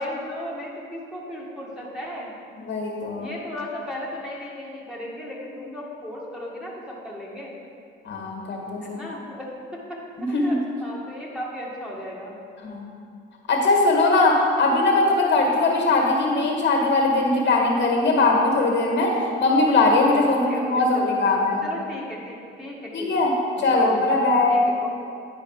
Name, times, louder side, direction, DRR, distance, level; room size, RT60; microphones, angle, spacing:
voice 1, 0.0-2.3 3.2-7.6 8.8-12.4 20.3-23.1 23.6-24.9, left 1 dB, 5° right, -5 dB, 1.9 m, -36 dB
voice 2, 2.7-3.3 8.1-9.0 10.2-10.6 12.6-12.9 13.5-19.1 19.4-21.6 22.9-23.3 23.6-24.6, left 2 dB, 65° left, -1 dB, 1.7 m, -20 dB
10.5 x 5.0 x 4.9 m, 2.3 s
cardioid pair, 90°, 20 cm